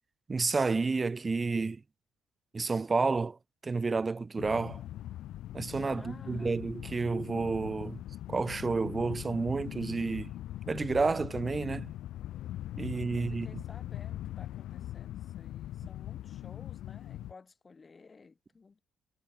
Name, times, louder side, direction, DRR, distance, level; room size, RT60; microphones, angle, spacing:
voice 1, 0.3-1.8 2.5-4.8 5.5-8.0 8.3-10.3 10.7-11.9 12.8-13.6, right 4 dB, 20° right, 0.3 m, -30 dB
sound 1, 4.4-17.3, left 13 dB, 80° left, 1.2 m, -41 dB
voice 2, 5.9-6.6 13.1-18.8, left 4 dB, 25° left, 6.1 m, -55 dB
cardioid pair, 140°, 0 cm